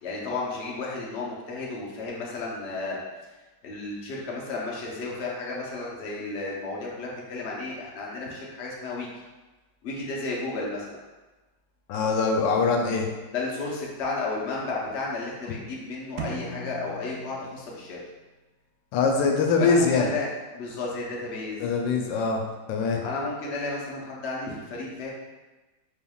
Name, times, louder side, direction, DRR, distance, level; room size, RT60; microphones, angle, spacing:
voice 1, 0.0-3.0 3.6-9.1 9.8-11.0 13.3-18.0 19.6-20.3 20.5-21.6 23.0-25.1, left 3 dB, 50° left, -4 dB, 0.8 m, -33 dB
voice 2, 11.9-13.1 18.9-20.1 21.6-22.4 22.7-23.1, left 4 dB, 90° left, 2 dB, 1.3 m, -23 dB
sound 1, 16.2-18.1, right 2 dB, 85° right, 0.6 m, -38 dB
4.6 x 3.5 x 2.3 m, 1.2 s
omnidirectional pair, 1.9 m